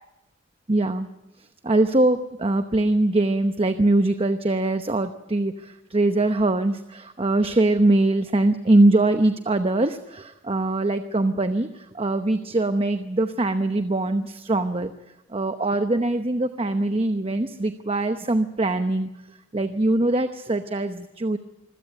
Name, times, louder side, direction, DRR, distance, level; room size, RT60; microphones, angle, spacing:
voice 1, 0.7-1.1 1.6-14.9 15.3-19.1 19.5-21.4, right 2 dB, 30° right, 9 dB, 0.9 m, -22 dB
25.0 x 16.5 x 7.8 m, 0.96 s
head